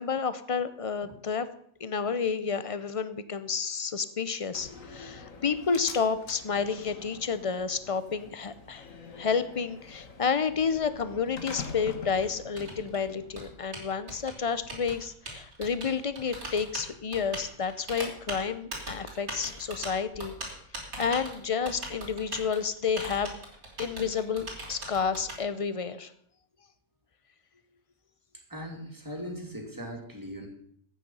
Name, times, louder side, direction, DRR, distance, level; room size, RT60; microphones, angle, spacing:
voice 1, 0.0-1.5 1.8-8.8 9.2-20.3 21.0-23.3 23.8-26.1, left 6 dB, 35° left, 13 dB, 0.5 m, -30 dB
Slam, 4.5-13.5, left 4 dB, 65° left, 1.8 m, -45 dB
Typing, 10.5-25.4, right 1 dB, 85° right, 3.7 m, -41 dB
voice 2, 28.5-30.5, equal, 15° right, 1 dB, 2.5 m, -39 dB
13.5 x 8.9 x 5.5 m, 0.67 s
omnidirectional pair, 1.5 m